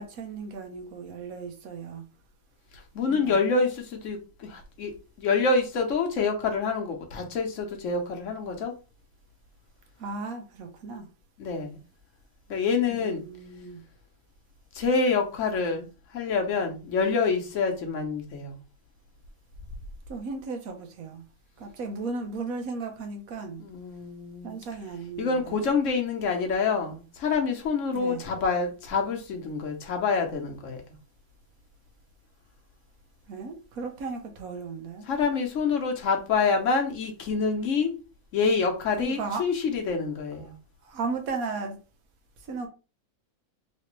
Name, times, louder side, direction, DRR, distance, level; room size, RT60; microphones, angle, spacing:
voice 1, 0.0-2.0 3.1-3.6 10.0-11.1 12.9-13.8 20.1-21.2 21.6-23.6 24.4-25.7 27.9-28.2 33.3-35.1 39.0-39.5 40.4-40.5 40.8-41.8 42.5-42.7, right 4 dB, 85° right, 1.3 m, -35 dB
voice 2, 2.9-4.9 5.2-8.7 11.4-11.8 12.5-13.2 14.7-15.9 16.1-18.6 23.6-24.6 25.2-30.8 35.1-37.9 38.3-40.5, left 4 dB, 65° left, 1.1 m, -27 dB
3.3 x 3.1 x 3.0 m
omnidirectional pair, 1.5 m